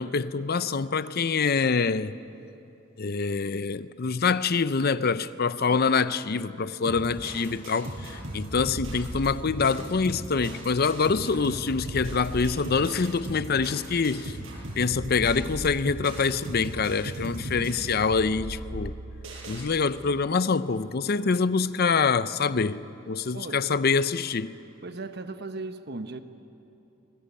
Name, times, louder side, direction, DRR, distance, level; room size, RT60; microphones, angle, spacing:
voice 1, 0.0-2.2 3.0-14.3 14.8-18.9 19.5-24.5, left 5 dB, 50° left, 0.6 m, -25 dB
sound 1, 6.8-19.6, right 1 dB, 80° right, 7.1 m, -37 dB
voice 2, 24.8-26.2, right 3 dB, 55° right, 1.2 m, -37 dB
25.5 x 20.5 x 8.4 m
head